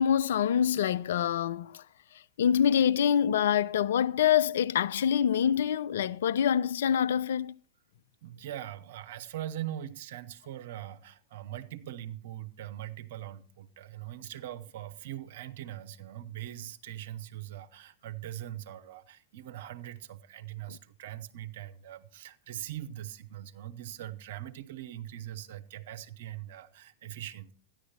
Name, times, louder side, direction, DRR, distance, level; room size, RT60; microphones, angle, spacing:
voice 1, 0.0-1.8 2.4-7.6 20.7-20.8, left 9 dB, 65° left, 0.4 m, -25 dB
voice 2, 8.2-27.5, right 12 dB, 60° right, 0.9 m, -41 dB
13.0 x 10.5 x 4.3 m
figure-of-eight pair, 95°, 0 cm